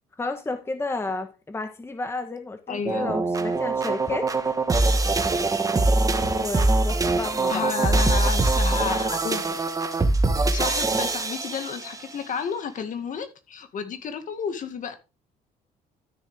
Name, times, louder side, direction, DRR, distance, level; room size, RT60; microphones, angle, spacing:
voice 1, 0.2-4.6 6.3-7.7, left 2 dB, 15° left, 1.2 m, -32 dB
voice 2, 2.7-3.1 7.5-9.6 10.5-14.9, left 6 dB, 50° left, 2.0 m, -31 dB
sound 1, 2.8-12.1, right 2 dB, 20° right, 1.4 m, -23 dB
13.0 x 6.9 x 3.5 m
cardioid pair, 110°, 17 cm